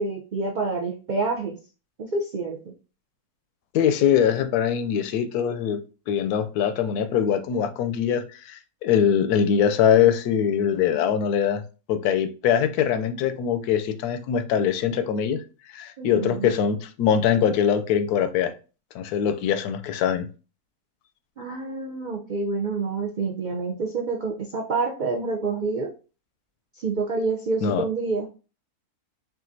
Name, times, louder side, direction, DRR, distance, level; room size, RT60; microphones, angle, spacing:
voice 1, 0.0-1.6 2.0-2.6 16.0-16.5 21.4-25.9 26.8-28.3, right 3 dB, 80° right, 0.4 m, -27 dB
voice 2, 3.7-5.8 6.1-11.6 11.9-15.4 15.7-18.5 18.9-20.3 27.6-27.8, left 8 dB, 80° left, 1.1 m, -22 dB
5.6 x 2.6 x 2.6 m
omnidirectional pair, 1.6 m